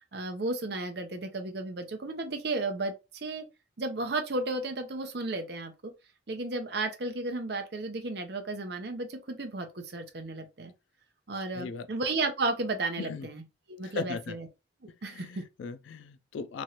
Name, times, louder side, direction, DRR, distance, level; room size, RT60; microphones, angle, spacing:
voice 1, 0.1-3.4 3.8-5.9 6.3-10.7 11.3-13.4 13.7-14.5 15.0-15.4, right 2 dB, 60° right, 0.6 m, -33 dB
voice 2, 11.5-11.9 13.0-13.3 13.8-14.4 14.9-16.6, left 5 dB, 80° left, 0.3 m, -38 dB
3.0 x 2.4 x 2.8 m
head